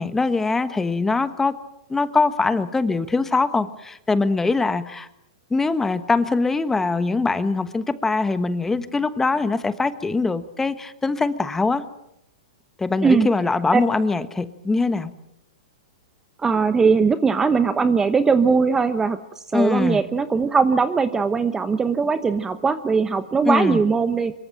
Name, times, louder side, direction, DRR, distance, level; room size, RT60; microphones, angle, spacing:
voice 1, 0.0-1.6 1.9-5.1 5.5-11.8 12.8-15.1 19.5-20.0 23.4-23.8, left 3 dB, 10° left, 12 dB, 1.3 m, -22 dB
voice 2, 16.4-19.2 19.5-24.3, right 5 dB, 10° right, 11 dB, 1.0 m, -20 dB
25.5 x 23.0 x 7.7 m, 0.80 s
hypercardioid pair, 140°, 4 cm